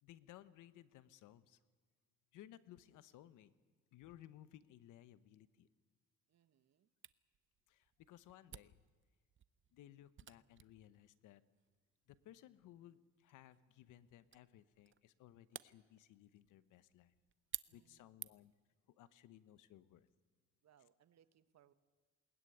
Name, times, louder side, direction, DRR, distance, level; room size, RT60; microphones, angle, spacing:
voice 1, 0.0-1.6 2.3-3.5 3.9-5.7 7.7-8.8 9.7-11.4 12.1-17.1 17.7-18.5 18.9-20.1, left 12 dB, 90° left, 14 dB, 1.0 m, -60 dB
voice 2, 6.3-6.9 17.7-18.2 20.6-21.7, right 10 dB, 60° right, 13 dB, 1.2 m, -72 dB
Camera, 7.0-18.6, right 9 dB, 40° right, 0.7 m, -56 dB
21.0 x 19.5 x 9.6 m, 1.4 s
cardioid pair, 90°, 30 cm